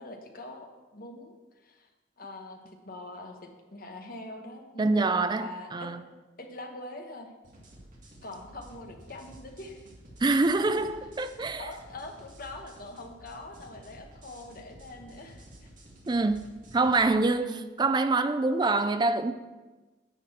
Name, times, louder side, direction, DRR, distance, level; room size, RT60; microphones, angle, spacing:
voice 1, 0.0-1.9 2.2-2.6 2.8-3.4 3.7-5.9 6.4-7.3 8.2-9.8 10.7-10.9 11.6-15.7 17.4-17.7, left 2 dB, 50° left, 1.2 m, -43 dB
voice 2, 4.8-6.0 10.2-11.7 16.1-19.3, right 3 dB, 20° right, 0.4 m, -26 dB
sound 1, 7.4-17.0, right 1 dB, 45° right, 1.8 m, -52 dB
10.0 x 4.2 x 7.6 m
head